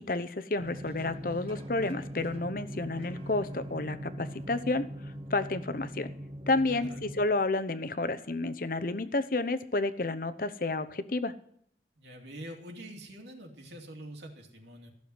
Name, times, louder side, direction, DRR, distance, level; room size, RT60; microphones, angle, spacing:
voice 1, 0.0-4.9 5.3-6.1 6.5-11.3, left 2 dB, 50° left, 11 dB, 0.9 m, -30 dB
sound 1, 0.6-7.2, equal, 30° right, 1.7 m, -41 dB
voice 2, 6.7-7.0 12.0-14.9, right 1 dB, 80° right, 2 dB, 2.7 m, -45 dB
15.0 x 7.0 x 9.6 m, 0.67 s
head